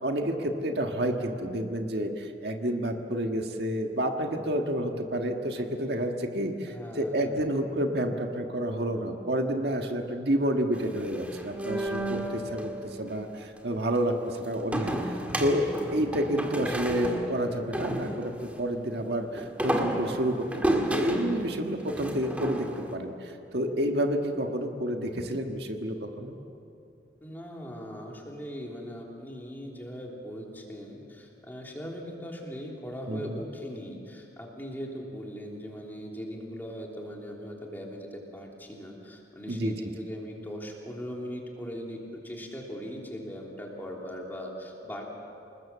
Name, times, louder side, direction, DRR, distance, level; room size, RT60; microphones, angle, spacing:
voice 1, 0.0-26.3 33.1-33.4 39.5-39.8, right 1 dB, 65° right, 4 dB, 1.7 m, -29 dB
voice 2, 6.7-7.5 27.2-45.0, equal, 10° left, -1 dB, 3.3 m, -40 dB
sound 1, 10.8-12.7 14.7-18.6 19.4-22.9, right 1 dB, 10° right, 1.8 m, -31 dB
28.0 x 20.0 x 7.4 m, 2.7 s
head